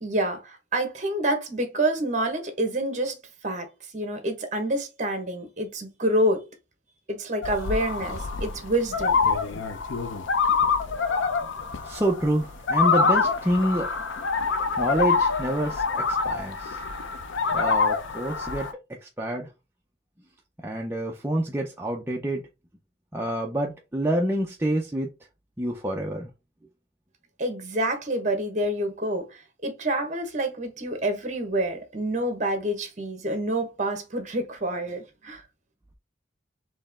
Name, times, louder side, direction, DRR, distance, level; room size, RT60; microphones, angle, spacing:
voice 1, 0.0-3.2 3.4-3.7 3.9-6.4 7.1-9.2 27.4-35.4, right 1 dB, 40° right, 1.2 m, -27 dB
sound 1, 7.4-18.7, left 4 dB, 80° left, 0.6 m, -26 dB
voice 2, 11.8-13.9 14.8-16.8 17.5-18.7 19.0-19.5 20.6-22.4 23.1-25.1 25.6-26.3, right 1 dB, 10° right, 0.5 m, -27 dB
4.5 x 2.9 x 3.5 m
head